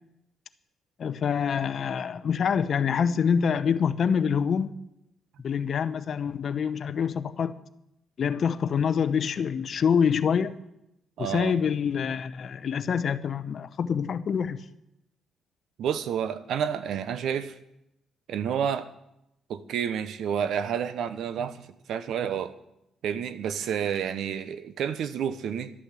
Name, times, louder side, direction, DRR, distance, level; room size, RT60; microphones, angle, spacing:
voice 1, 1.0-4.7 5.4-7.6 8.2-10.5 11.2-14.6, left 7 dB, 55° left, 0.8 m, -26 dB
voice 2, 11.2-11.6 15.8-17.5 18.3-18.9 19.5-22.5 23.0-25.7, right 8 dB, 75° right, 0.9 m, -30 dB
12.5 x 8.8 x 7.5 m
cardioid pair, 90°, 0 cm